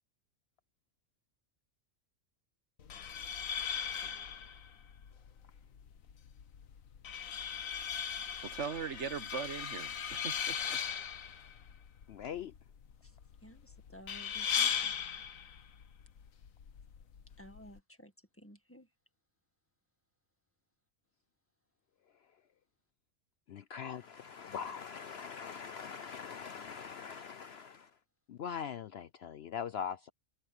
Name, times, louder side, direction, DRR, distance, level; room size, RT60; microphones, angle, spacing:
sound 1, 2.8-17.8, left 7 dB, 85° left, 1.5 m, -39 dB
voice 1, 8.4-10.8, right 6 dB, 60° right, 1.4 m, -40 dB
voice 2, 12.1-12.5 23.5-27.9 28.3-30.1, left 7 dB, 60° left, 0.7 m, -42 dB
voice 3, 13.4-14.9 17.4-18.1 18.4-18.9, equal, 10° left, 1.7 m, -54 dB
omnidirectional pair, 1.4 m